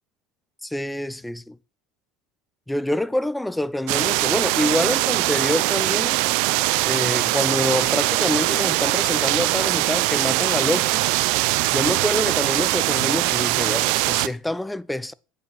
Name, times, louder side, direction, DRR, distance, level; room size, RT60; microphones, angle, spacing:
voice 1, 0.6-1.6 2.7-6.2 6.8-11.0 11.7-15.1, left 1 dB, 5° left, 0.7 m, -26 dB
sound 1, 3.9-14.3, right 20 dB, 75° right, 0.6 m, -22 dB
9.2 x 8.4 x 6.3 m
supercardioid pair, 95°, 0 cm